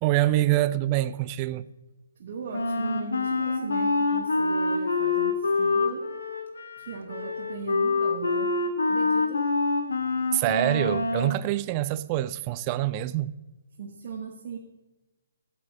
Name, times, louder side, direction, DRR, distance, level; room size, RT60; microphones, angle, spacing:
voice 1, 0.0-1.7 10.3-13.3, right 15 dB, 25° right, 0.3 m, -25 dB
voice 2, 2.2-6.1 6.8-8.5 8.9-9.4 13.8-14.6, right 5 dB, 40° right, 1.1 m, -38 dB
Wind instrument woodwind instrument, 2.5-11.4, left 3 dB, 65° left, 1.2 m, -26 dB
13.0 x 8.4 x 2.7 m
figure-of-eight pair, 135°, 0 cm